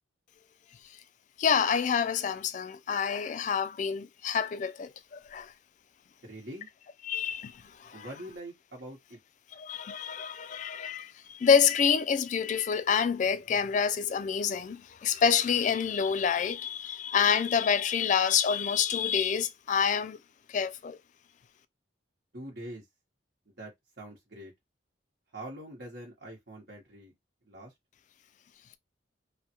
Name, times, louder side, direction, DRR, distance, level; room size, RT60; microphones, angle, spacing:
voice 1, 1.4-5.5 7.0-7.5 7.8-8.1 9.5-20.2 20.5-21.0, left 7 dB, 40° left, 0.3 m, -27 dB
voice 2, 6.2-6.7 7.9-9.2 22.3-22.8 23.5-24.5 25.3-27.1 27.4-27.7, right 1 dB, 60° right, 1.0 m, -44 dB
3.3 x 2.1 x 2.9 m
head